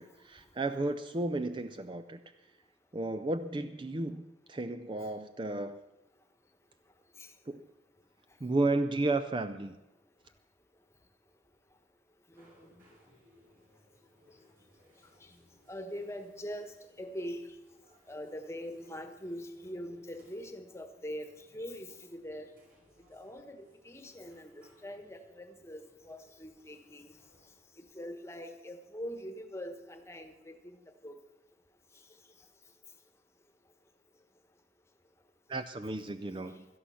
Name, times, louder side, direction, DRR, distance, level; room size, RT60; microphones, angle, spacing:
voice 1, 0.0-2.2 2.9-5.8 7.5-7.7 8.4-9.8 35.5-36.7, right 2 dB, 25° right, 10 dB, 0.4 m, -33 dB
voice 2, 12.3-12.7 15.2-15.3 15.7-17.6 18.1-22.5 23.1-27.1 27.8-31.1, equal, 15° left, 7 dB, 1.2 m, -43 dB
sound 1, 12.3-27.5, equal, 50° right, 7.3 m, -66 dB
17.5 x 13.0 x 5.7 m, 0.99 s
head